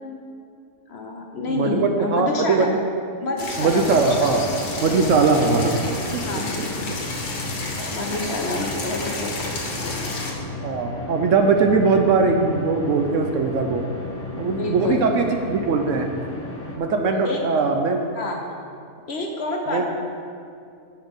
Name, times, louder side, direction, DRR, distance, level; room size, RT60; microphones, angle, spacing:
voice 1, 0.9-2.7 3.2-4.3 6.2-7.0 7.9-9.5 9.8-10.1 14.5-15.0 17.2-17.4 18.2-18.4 19.1-19.9, left 2 dB, 55° left, 1 dB, 0.8 m, -28 dB
voice 2, 1.5-2.8 3.6-4.5 4.8-5.8 6.1-6.2 6.9-7.0 10.6-13.8 14.4-16.1 16.8-18.0 19.7-19.9, right 4 dB, 65° right, 4 dB, 0.9 m, -20 dB
sound 1, 3.4-10.3, left 2 dB, 80° left, 1.7 m, -31 dB
sound 2, 3.8-16.8, left 1 dB, 15° left, 0.6 m, -34 dB
10.5 x 7.2 x 3.6 m, 2.4 s
omnidirectional pair, 1.6 m